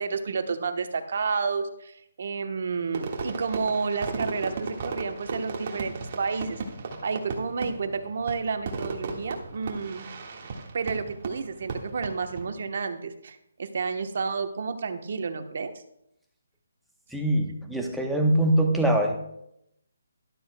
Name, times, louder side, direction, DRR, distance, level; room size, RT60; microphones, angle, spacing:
voice 1, 0.0-6.6 7.0-10.1 10.7-15.7, right 5 dB, 55° right, 7 dB, 1.0 m, -30 dB
Fireworks, 2.9-12.5, right 4 dB, 40° right, 1.6 m, -35 dB
voice 2, 17.1-19.2, right 1 dB, ahead, 1 dB, 0.9 m, -23 dB
12.5 x 11.5 x 2.2 m, 0.79 s
hypercardioid pair, 155°, 0 cm